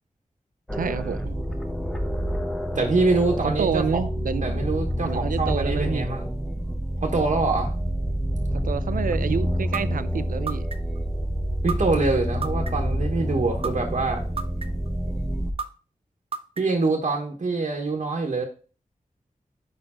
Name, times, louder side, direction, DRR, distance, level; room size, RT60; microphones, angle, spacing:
sound 1, 0.7-15.5, equal, ahead, 0.8 m, -28 dB
voice 1, 0.7-1.4 3.4-4.7 5.0-6.1 8.5-10.6, right 6 dB, 85° right, 0.4 m, -28 dB
voice 2, 2.7-3.8 4.4-6.3 7.0-7.7 11.6-14.2 16.6-18.4, right 3 dB, 60° right, 1.0 m, -25 dB
sound 2, 9.7-9.8 10.5-11.0 11.7-11.8 12.4-12.9 13.6-13.7 14.4-14.9 15.6-15.7 16.3-16.8, right 5 dB, 45° right, 0.6 m, -30 dB
5.2 x 4.5 x 4.2 m
wide cardioid pair, 90°, 14 cm